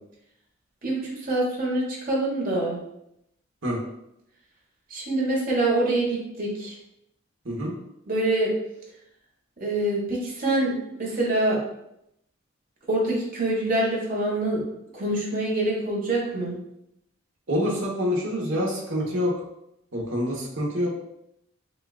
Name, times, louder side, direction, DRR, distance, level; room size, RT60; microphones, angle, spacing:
voice 1, 0.8-2.8 4.9-6.7 8.1-8.5 9.6-10.7 11.0-11.6 12.9-14.6 14.9-16.6, right 2 dB, 45° right, -3 dB, 1.3 m, -25 dB
voice 2, 17.5-19.3 19.9-20.9, equal, 65° right, -2 dB, 1.2 m, -26 dB
6.6 x 2.5 x 2.4 m, 0.81 s
head